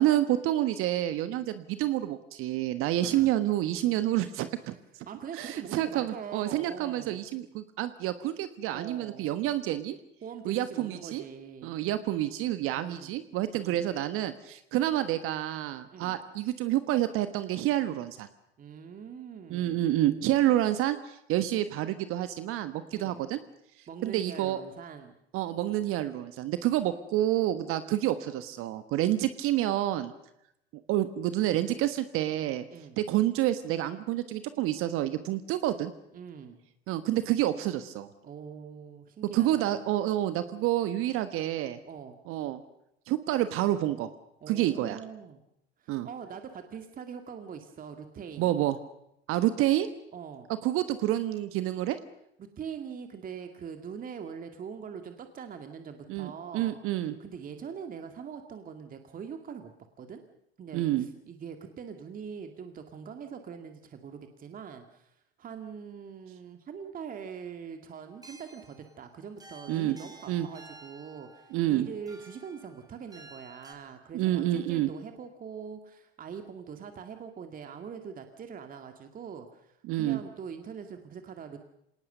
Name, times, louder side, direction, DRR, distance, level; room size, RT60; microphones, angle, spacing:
voice 1, 0.0-4.8 5.3-10.0 10.4-11.2 11.6-18.3 19.5-23.4 24.0-24.6 25.3-30.1 30.9-32.6 33.0-35.9 36.9-38.1 39.3-41.8 42.3-42.6 43.1-44.1 44.5-45.0 45.9-46.1 48.4-48.8 49.3-49.9 50.6-52.0 56.1-57.1 60.7-61.1 69.7-70.0 70.3-70.5 71.5-71.9 74.1-74.9 79.9-80.2, right 13 dB, 45° right, 11 dB, 1.4 m, -28 dB
voice 2, 5.1-7.3 8.7-9.3 10.2-11.8 12.7-13.2 13.5-13.9 15.9-16.2 18.6-20.0 22.9-23.2 23.9-25.2 32.7-33.0 36.1-36.6 38.2-39.7 41.8-42.2 44.4-45.4 45.8-48.5 50.1-50.5 52.4-56.8 57.2-59.7 60.0-60.2 60.6-81.6, right 7 dB, 25° right, 6 dB, 2.1 m, -43 dB
sound 1, 68.1-73.7, right 2 dB, 10° right, 3.8 m, -53 dB
26.5 x 19.0 x 6.7 m, 0.78 s
hypercardioid pair, 90°, 31 cm